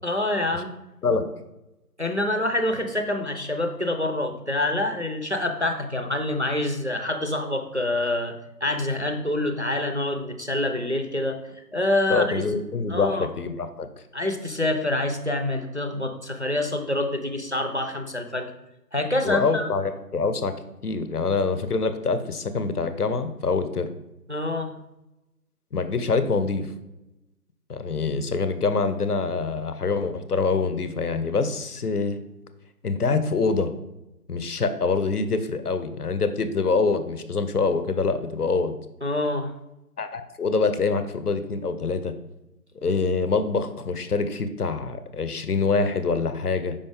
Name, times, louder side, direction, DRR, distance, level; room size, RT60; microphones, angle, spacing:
voice 1, 0.0-0.7 2.0-8.4 8.6-11.4 11.7-12.4 12.9-13.3 14.1-18.5 18.9-19.7 24.3-24.7 39.0-39.5, left 1 dB, 45° right, 5 dB, 0.4 m, -26 dB
voice 2, 12.1-13.9 19.2-20.5 20.8-23.9 25.7-26.7 27.7-32.2 32.8-33.7 34.3-38.8 40.0-42.1 42.8-46.8, left 4 dB, 65° left, 10 dB, 0.7 m, -25 dB
5.4 x 5.2 x 3.5 m, 0.93 s
figure-of-eight pair, 175°, 49 cm